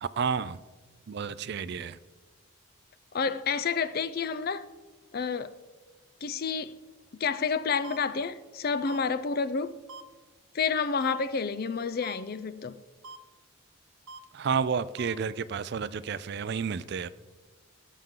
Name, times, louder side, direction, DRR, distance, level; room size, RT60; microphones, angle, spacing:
voice 1, 0.0-0.6 1.1-2.0 14.3-17.1, right 6 dB, 50° right, 0.4 m, -31 dB
voice 2, 3.1-4.7 5.1-5.5 6.2-6.7 7.2-9.8 10.5-12.8, left 5 dB, 45° left, 0.4 m, -29 dB
sound 1, 7.8-8.0 8.9-9.0 9.9-10.0 11.0-11.1 12.0-12.2 13.0-13.2 14.1-14.2 15.0-15.1, right 3 dB, 70° right, 0.8 m, -43 dB
17.5 x 7.2 x 3.8 m
head